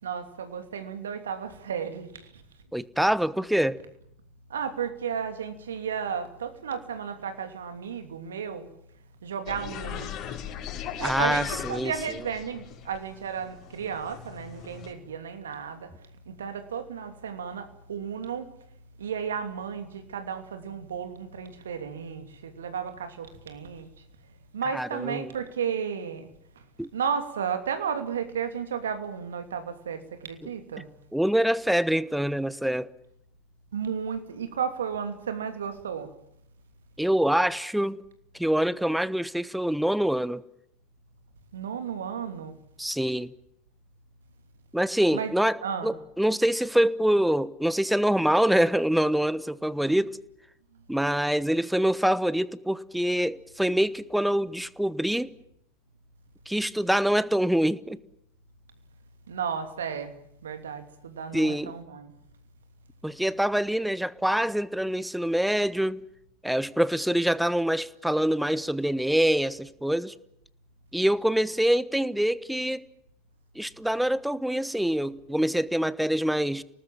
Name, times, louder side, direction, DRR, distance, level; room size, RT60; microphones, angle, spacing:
voice 1, 0.0-2.3 4.5-8.7 9.2-10.1 11.0-15.9 16.3-18.5 19.0-23.9 24.5-26.3 26.9-30.8 33.7-36.1 41.5-42.6 45.1-45.3 45.6-45.9 59.3-60.1 60.4-62.1, right 7 dB, 75° right, 2.9 m, -33 dB
voice 2, 2.7-3.8 11.0-11.9 24.7-25.3 26.8-26.9 30.4-30.5 31.1-32.9 37.0-38.0 38.3-40.4 42.8-43.3 44.7-50.1 50.9-55.3 56.5-58.0 61.3-61.7 63.0-66.0 66.4-70.1 70.9-72.8 73.5-76.6, right 1 dB, ahead, 1.1 m, -25 dB
sound 1, 9.5-14.9, left 9 dB, 45° left, 6.1 m, -38 dB
30.0 x 19.0 x 7.5 m
figure-of-eight pair, 85°, 0 cm